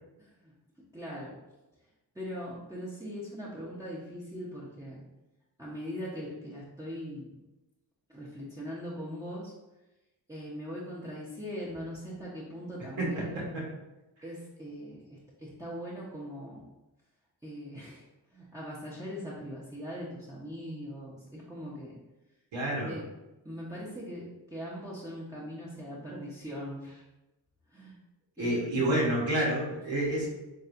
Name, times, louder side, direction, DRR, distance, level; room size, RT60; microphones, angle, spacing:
voice 1, 0.2-0.5 0.9-1.3 2.1-5.0 5.6-7.4 8.1-9.5 10.3-13.3 14.2-16.6 17.4-18.1 18.3-22.0 22.9-23.0 23.4-27.0 27.7-28.0 28.4-28.9, equal, 5° right, -7 dB, 1.0 m, -41 dB
voice 2, 13.0-13.7 22.5-22.9 28.4-30.3, right 1 dB, 75° right, -5 dB, 1.3 m, -29 dB
4.3 x 3.2 x 2.6 m, 1.0 s
supercardioid pair, 55°, 46 cm